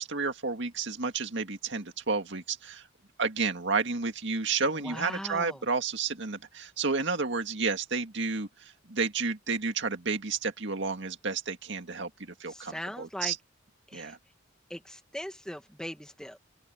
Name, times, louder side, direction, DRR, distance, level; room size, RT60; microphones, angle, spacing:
voice 1, 0.0-2.9 3.2-13.4 13.9-14.2, right 4 dB, 65° right, 2.1 m, -31 dB
voice 2, 4.8-5.6 12.5-13.3 13.9-14.1 14.7-16.4, equal, 5° left, 1.4 m, -39 dB
open air
head